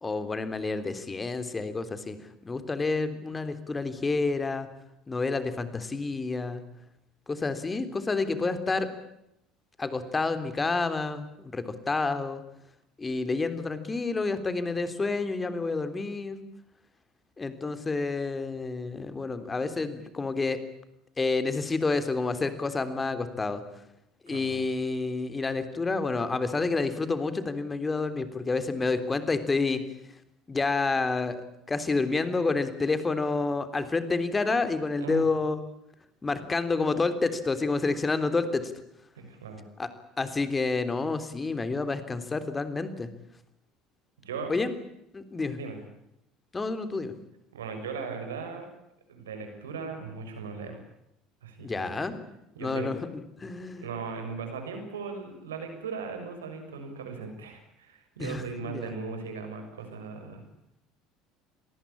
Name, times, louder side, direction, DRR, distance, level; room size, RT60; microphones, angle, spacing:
voice 1, 0.0-2.2 2.4-4.7 5.1-6.6 7.3-8.9 9.8-12.4 13.0-16.4 17.4-20.6 21.2-23.6 24.2-29.8 30.5-35.6 36.2-38.7 39.8-39.9 40.2-43.1 44.5-44.7 45.1-45.6 46.5-47.1 51.6-52.2 52.6-53.0 53.4-53.9 58.2-58.9, left 3 dB, 20° left, 10 dB, 3.4 m, -29 dB
voice 2, 24.3-24.6 35.0-35.2 39.1-39.6 44.2-44.5 45.5-45.8 47.5-48.7 49.1-50.8 51.4-52.1 52.5-52.9 53.8-60.4, right 5 dB, 75° right, 6 dB, 6.3 m, -38 dB
27.0 x 20.0 x 8.6 m, 0.82 s
figure-of-eight pair, 65°, 0 cm